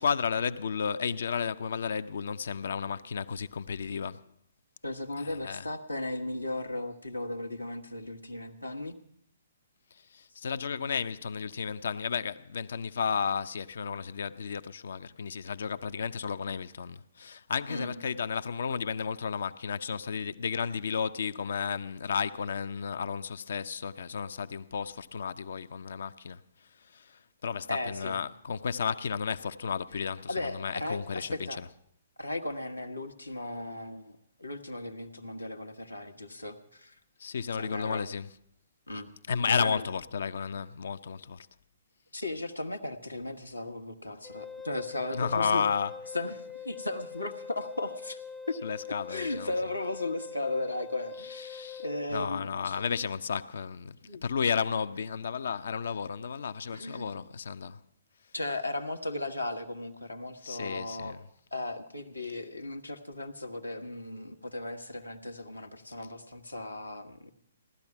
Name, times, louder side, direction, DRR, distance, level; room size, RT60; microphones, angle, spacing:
voice 1, 0.0-4.2 5.2-5.6 10.1-26.4 26.9-31.7 37.2-38.3 39.3-41.5 45.1-45.9 48.6-49.5 51.3-54.0 54.2-57.8 60.4-61.2, left 6 dB, 60° left, 0.6 m, -33 dB
voice 2, 4.8-9.0 17.7-17.9 27.7-28.2 30.3-31.6 32.2-37.0 37.6-38.0 38.9-39.1 39.5-39.8 42.1-45.7 46.1-48.2 48.9-52.8 54.1-54.2 56.7-57.2 58.3-61.2 61.5-67.3, left 2 dB, 90° left, 1.3 m, -36 dB
Wind instrument woodwind instrument, 44.2-52.1, left 5 dB, 5° left, 0.5 m, -43 dB
17.0 x 12.5 x 5.9 m
figure-of-eight pair, 125°, 0 cm